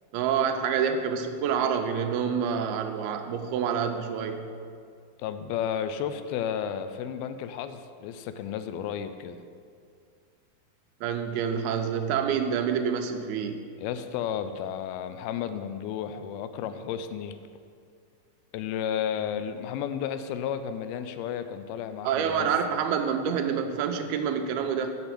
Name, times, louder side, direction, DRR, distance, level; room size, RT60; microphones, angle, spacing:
voice 1, 0.1-4.5 11.0-13.7 22.0-24.9, right 7 dB, 90° right, 6 dB, 2.6 m, -27 dB
voice 2, 5.2-9.4 13.8-17.4 18.5-22.5, left 8 dB, 85° left, 10 dB, 2.4 m, -32 dB
7.0 x 6.9 x 7.6 m, 2.2 s
omnidirectional pair, 4.4 m